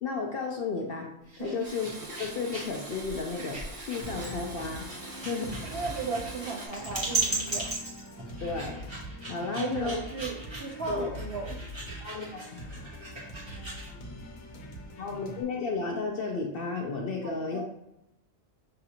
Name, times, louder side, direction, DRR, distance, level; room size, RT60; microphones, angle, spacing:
voice 1, 0.0-1.1 1.4-5.6 8.4-8.8 9.3-10.0 10.9-11.1 12.0-12.6 15.0-17.6, left 4 dB, 60° left, 1 dB, 0.7 m, -33 dB
sound 1, 1.2-13.9, right 3 dB, 20° right, 1.1 m, -37 dB
Domestic sounds home sounds, 1.6-6.7, right 1 dB, 75° right, 1.4 m, -43 dB
sound 2, 4.0-15.4, equal, 90° left, 1.2 m, -43 dB
voice 2, 5.6-7.7 9.5-11.6 17.2-17.6, right 4 dB, 55° right, 0 dB, 0.9 m, -36 dB
6.4 x 2.5 x 2.8 m, 0.81 s
omnidirectional pair, 1.3 m